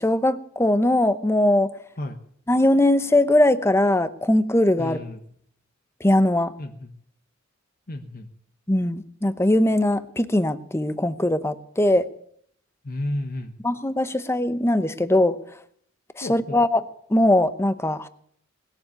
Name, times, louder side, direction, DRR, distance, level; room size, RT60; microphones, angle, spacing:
voice 1, 0.0-1.7 2.5-5.0 6.0-6.5 8.7-12.1 13.6-15.4 16.2-16.8 17.1-18.1, left 1 dB, 10° left, 13 dB, 0.8 m, -20 dB
voice 2, 4.8-5.2 6.6-6.9 7.9-8.3 12.8-13.5 16.2-16.6, left 1 dB, 45° left, 5 dB, 1.2 m, -32 dB
20.0 x 7.3 x 9.5 m, 0.66 s
head